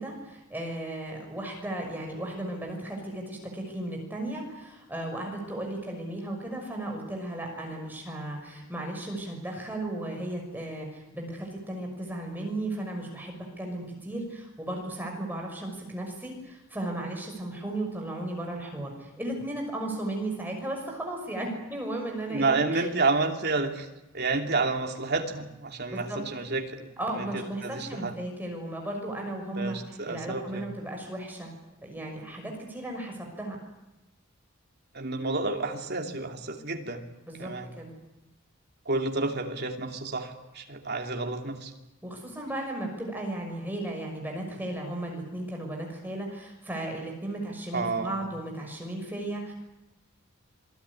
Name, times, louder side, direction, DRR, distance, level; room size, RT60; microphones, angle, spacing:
voice 1, 0.0-22.8 25.9-26.2 27.0-29.8 30.0-31.5 31.8-33.6 37.3-37.9 42.0-49.5, right 1 dB, 10° right, 1 dB, 6.1 m, -35 dB
voice 2, 22.3-23.9 24.1-26.9 27.2-28.1 29.6-30.7 34.9-37.0 37.4-37.7 38.8-41.7 47.7-48.3, right 3 dB, 50° right, 3 dB, 2.8 m, -30 dB
27.0 x 19.0 x 9.9 m, 0.93 s
head